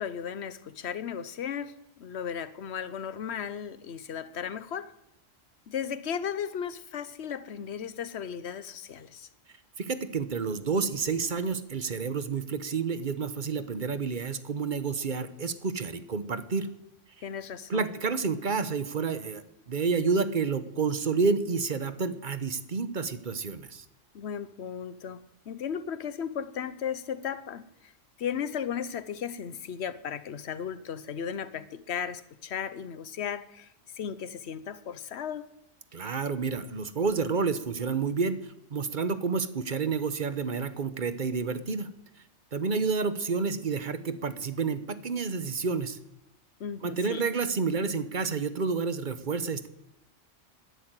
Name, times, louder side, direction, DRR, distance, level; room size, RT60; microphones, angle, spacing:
voice 1, 0.0-4.9 5.7-9.3 17.2-17.9 24.1-25.2 25.5-27.9 28.2-35.5 46.6-47.2, left 8 dB, 60° left, 1.1 m, -35 dB
voice 2, 9.8-16.7 17.7-23.8 35.9-38.4 38.7-41.9 42.5-46.0 46.8-49.7, right 5 dB, 45° right, 1.0 m, -29 dB
12.5 x 11.5 x 9.1 m
omnidirectional pair, 1.3 m